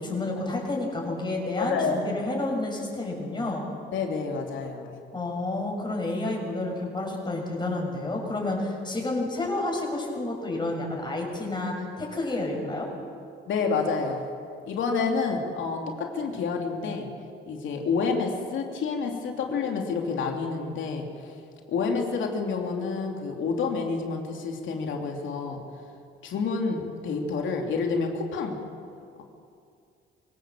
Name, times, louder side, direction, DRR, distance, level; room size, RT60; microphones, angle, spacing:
voice 1, 0.0-3.6 5.1-12.9, left 2 dB, 20° left, -1 dB, 6.7 m, -30 dB
voice 2, 1.6-2.1 3.9-5.0 13.5-14.2 14.7-17.1 17.5-21.3 21.7-25.6 26.2-28.6, left 4 dB, 75° left, 2 dB, 3.1 m, -29 dB
24.5 x 17.5 x 7.6 m, 2.4 s
cardioid pair, 90°, 20 cm